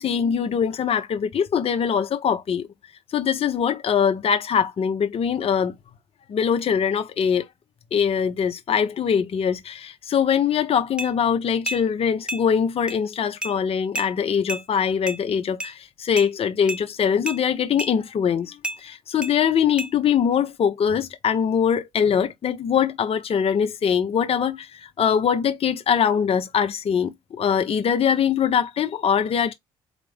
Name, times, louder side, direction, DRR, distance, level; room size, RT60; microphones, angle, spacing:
voice 1, 0.0-2.7 3.1-5.7 6.3-7.5 7.9-29.5, left 7 dB, 50° left, 0.7 m, -22 dB
sound 1, 11.0-11.1 11.7-11.8 12.3-12.4 12.9-13.0 13.4-13.5 13.9-14.1 14.5-14.6 15.1-15.2 15.6-15.7 16.2-16.3 16.7-16.8 17.3-17.4 17.8-17.9 18.6-18.8 19.2-19.3 19.8-19.9, right 1 dB, 10° right, 0.8 m, -30 dB
4.3 x 2.5 x 3.4 m
supercardioid pair, 55°, 12 cm